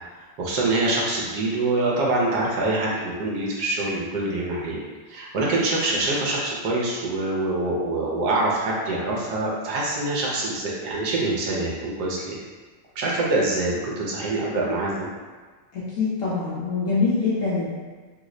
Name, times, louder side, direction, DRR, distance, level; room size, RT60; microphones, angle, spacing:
voice 1, 0.4-4.8 5.1-12.4 13.0-15.1, right 2 dB, 70° right, -4 dB, 1.1 m, -25 dB
voice 2, 15.7-17.7, left 4 dB, 65° left, -9 dB, 0.8 m, -24 dB
3.0 x 2.0 x 3.6 m, 1.4 s
omnidirectional pair, 1.9 m